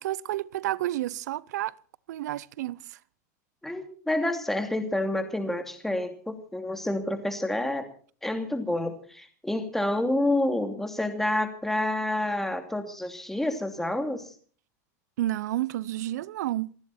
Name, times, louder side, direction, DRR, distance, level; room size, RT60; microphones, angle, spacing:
voice 1, 0.0-1.7 2.1-3.0 15.2-16.8, right 14 dB, 75° right, 0.7 m, -30 dB
voice 2, 3.6-7.9 8.2-14.3, left 1 dB, 5° left, 2.7 m, -28 dB
28.0 x 10.5 x 4.3 m
supercardioid pair, 130°, 9 cm